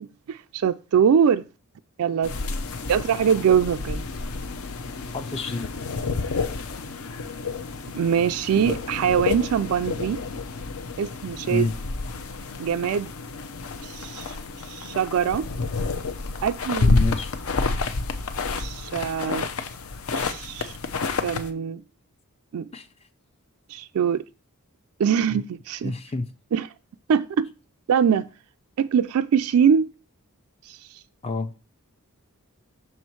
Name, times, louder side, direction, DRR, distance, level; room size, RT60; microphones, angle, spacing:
voice 1, 0.0-1.4 2.0-2.3 2.9-4.0 7.9-10.2 11.0-11.7 12.6-13.1 13.8-14.4 14.6-15.5 16.4-16.9 18.5-19.5 20.1-20.7 21.2-21.8 22.5-22.7 23.7-24.2 25.0-25.9 26.5-26.7 27.1-27.5 27.9-28.2 28.8-29.9 30.7-30.8, right 7 dB, 75° right, 0.3 m, -23 dB
sound 1, 2.2-21.5, left 3 dB, 70° left, 0.7 m, -29 dB
voice 2, 5.1-5.8 11.5-11.8 16.8-17.3 22.7-22.9 25.3-25.4 25.8-26.3 31.2-31.5, left 3 dB, 25° left, 0.4 m, -28 dB
6.2 x 4.4 x 4.5 m
head